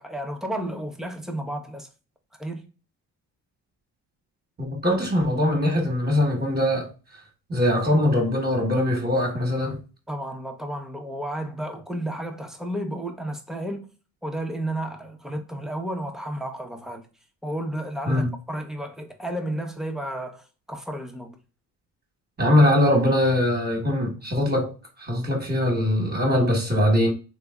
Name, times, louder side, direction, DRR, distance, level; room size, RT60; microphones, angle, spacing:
voice 1, 0.0-1.9 2.4-2.7 10.1-13.9 14.2-17.0 17.4-21.4, right 1 dB, ahead, 0.8 m, -32 dB
voice 2, 4.6-6.9 7.5-9.8 18.1-18.3 22.4-24.7 25.0-27.1, left 1 dB, 25° right, 1.3 m, -22 dB
3.3 x 3.1 x 2.3 m
supercardioid pair, 75°, 40 cm